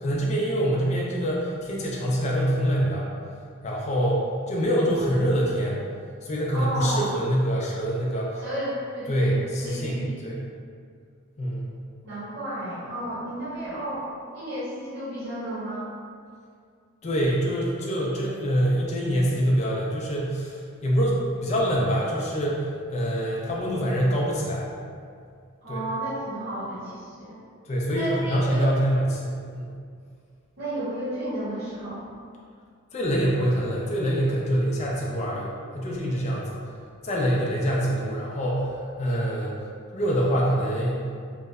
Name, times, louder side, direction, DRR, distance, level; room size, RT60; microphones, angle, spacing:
voice 1, 0.0-3.1 3.6-5.8 6.2-8.4 9.1-10.4 11.4-11.7 17.0-24.7 25.7-25.8 27.6-29.7 32.9-36.6 37.0-39.6 39.9-41.1, equal, 30° left, -4 dB, 0.3 m, -25 dB
voice 2, 6.5-7.1 8.4-10.2 12.0-14.1 14.3-15.9 25.6-27.4 27.9-28.7 30.6-32.0, right 1 dB, 60° right, -13 dB, 0.9 m, -32 dB
2.7 x 2.1 x 2.3 m, 2.2 s
head